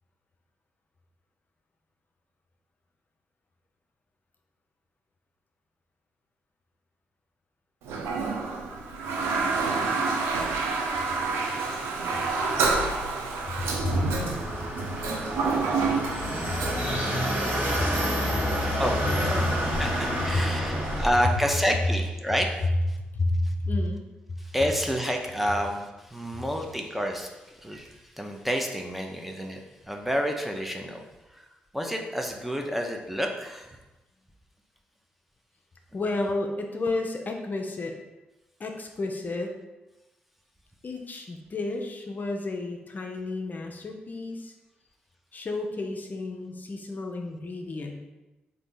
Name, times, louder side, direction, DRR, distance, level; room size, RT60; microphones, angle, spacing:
Toilet flush, 7.8-17.0, right 4 dB, 85° right, 0.5 m, -28 dB
voice 1, 13.6-14.0 16.5-16.6 17.7-17.9 18.3-18.4 20.3-20.4 23.1-24.1 35.9-37.9 38.6-39.5 40.8-44.5 45.3-48.0, left 2 dB, 45° left, 2 dB, 0.5 m, -31 dB
sound 1, 13.6-21.1, equal, 55° right, 1.1 m, -29 dB
sound 2, 16.1-22.0, left 1 dB, 20° right, 1.3 m, -41 dB
voice 2, 18.6-19.5 19.8-23.0 23.4-23.5 24.4-31.0 31.3-31.4 31.7-33.8, equal, 5° right, 2 dB, 0.6 m, -29 dB
3.8 x 2.6 x 3.7 m, 1.1 s
hypercardioid pair, 45°, 4 cm